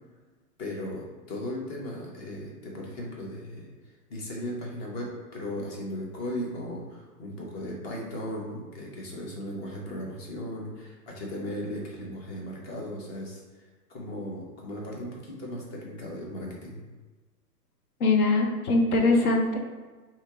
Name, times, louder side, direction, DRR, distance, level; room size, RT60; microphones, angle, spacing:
voice 1, 0.6-3.7 4.1-13.4 13.9-16.8, left 1 dB, 40° left, -2 dB, 1.2 m, -37 dB
voice 2, 18.0-19.6, left 2 dB, 60° left, 2 dB, 1.0 m, -22 dB
3.3 x 2.9 x 4.7 m, 1.3 s
hypercardioid pair, 135°, 49 cm